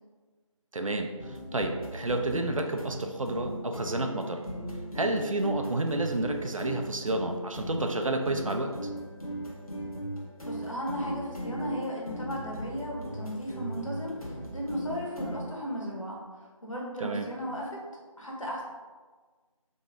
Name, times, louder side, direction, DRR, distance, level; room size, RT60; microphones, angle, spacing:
voice 1, 0.7-4.4 4.9-8.7 17.0-17.3, right 2 dB, 70° right, 4 dB, 0.5 m, -30 dB
sound 1, 1.2-15.4, equal, 85° left, 0.9 m, -38 dB
voice 2, 10.4-16.2 16.6-17.8 18.2-18.6, equal, 65° left, -3 dB, 1.1 m, -35 dB
3.1 x 2.8 x 3.6 m, 1.4 s
figure-of-eight pair, 165°, 18 cm